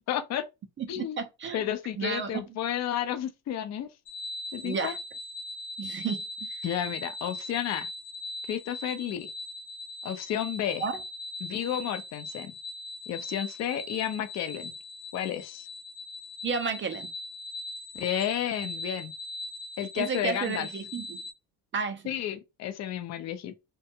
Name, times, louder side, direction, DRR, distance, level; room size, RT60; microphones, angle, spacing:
voice 1, 0.1-0.5 0.9-1.2 1.5-3.9 4.5-4.9 6.6-7.9 8.5-9.3 10.0-10.9 11.4-12.5 13.1-14.7 15.1-15.7 17.9-19.1 19.8-20.7 22.1-23.5, left 10 dB, 40° left, 0.5 m, -32 dB
voice 2, 0.8-1.6 2.0-2.4 4.6-5.0 5.8-6.6 10.8-10.9 16.4-17.1 20.0-21.2 21.7-22.1, right 5 dB, 30° right, 0.5 m, -32 dB
sound 1, 4.1-21.3, left 1 dB, 60° left, 1.0 m, -40 dB
2.5 x 2.3 x 2.7 m
supercardioid pair, 85°, 41 cm